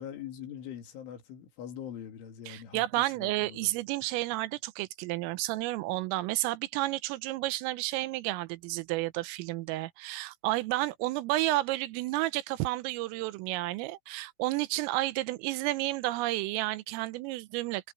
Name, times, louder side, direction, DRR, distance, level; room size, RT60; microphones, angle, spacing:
voice 1, 0.0-3.7, left 9 dB, 70° left, 5.0 m, -43 dB
voice 2, 2.5-17.9, right 18 dB, 85° right, 3.4 m, -31 dB
omnidirectional pair, 5.9 m